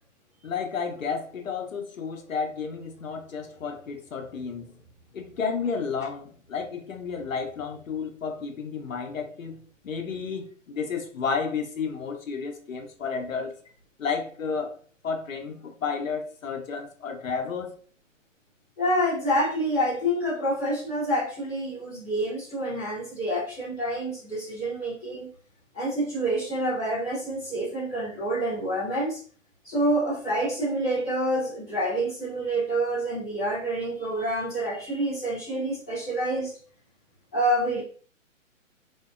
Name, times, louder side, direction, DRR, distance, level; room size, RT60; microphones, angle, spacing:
voice 1, 0.4-4.7 5.1-13.5 14.0-14.8 15.0-17.7, left 5 dB, 80° left, 0.7 m, -32 dB
voice 2, 18.8-25.3 25.7-29.2 29.6-36.5 37.3-37.8, right 1 dB, 5° left, 0.3 m, -27 dB
2.6 x 2.2 x 2.3 m
figure-of-eight pair, 130°, 39 cm